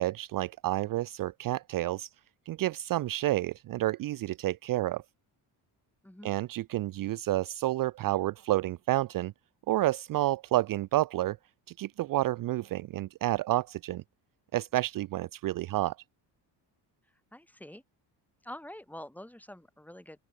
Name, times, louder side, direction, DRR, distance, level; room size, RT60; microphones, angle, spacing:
voice 1, 0.0-2.1 2.5-5.0 6.2-9.3 9.7-11.4 11.8-14.0 14.5-16.0, right 15 dB, 50° right, 0.5 m, -30 dB
voice 2, 6.0-6.4 17.3-17.8 18.4-20.2, left 1 dB, 5° left, 4.7 m, -46 dB
open air
cardioid pair, 150°, 42 cm